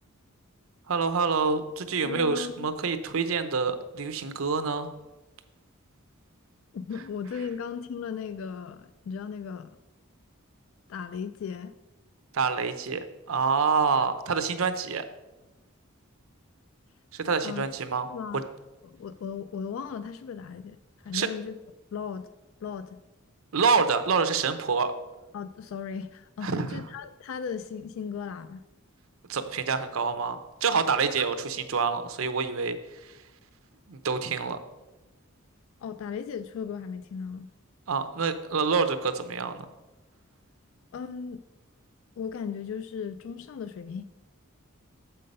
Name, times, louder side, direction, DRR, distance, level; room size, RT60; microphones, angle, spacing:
voice 1, 0.9-4.9 12.3-15.0 17.1-18.1 21.1-21.3 23.5-24.9 26.4-26.8 29.3-32.8 33.9-34.6 37.9-39.6, right 5 dB, 75° right, 9 dB, 0.7 m, -27 dB
voice 2, 2.0-2.7 6.7-9.8 10.9-11.7 17.4-17.6 18.1-18.4 18.8-20.8 21.0-21.6 21.9-22.3 22.6-23.0 25.3-28.6 31.2-31.3 35.8-37.5 40.9-41.4 42.2-44.0, left 6 dB, 70° left, 13 dB, 0.3 m, -36 dB
7.5 x 5.7 x 5.3 m, 1.1 s
head